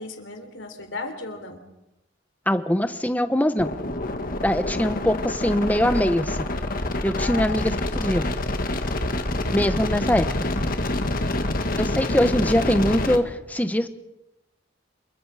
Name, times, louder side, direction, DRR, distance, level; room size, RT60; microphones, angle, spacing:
voice 1, 0.0-1.6 7.1-8.1 10.9-11.5, left 2 dB, 75° left, 6 dB, 3.7 m, -37 dB
voice 2, 2.5-3.7 4.4-6.5 7.0-8.3 9.5-10.3 11.8-13.9, equal, 10° left, 9 dB, 1.1 m, -22 dB
sound 1, 3.6-13.2, left 1 dB, 50° left, 1.8 m, -27 dB
27.5 x 23.0 x 5.0 m, 0.94 s
head